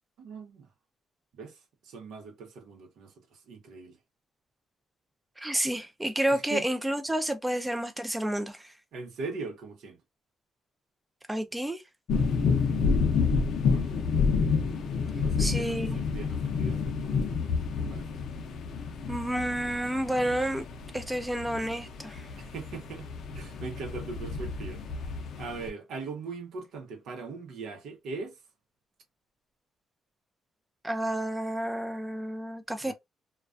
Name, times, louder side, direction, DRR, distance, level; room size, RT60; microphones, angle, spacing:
voice 1, 0.2-0.7 1.3-4.0 6.3-6.7 8.9-10.0 13.7-14.0 15.2-17.4 17.7-18.2 22.4-24.8 25.4-28.4 32.8-32.9, right 4 dB, 80° right, 0.8 m, -40 dB
voice 2, 5.4-8.7 11.3-11.8 15.4-16.0 19.1-20.7 20.9-22.3 30.8-32.9, right 1 dB, 10° right, 0.4 m, -30 dB
sound 1, 12.1-25.7, left 5 dB, 70° left, 0.5 m, -29 dB
2.3 x 2.2 x 2.4 m
cardioid pair, 90°, 0 cm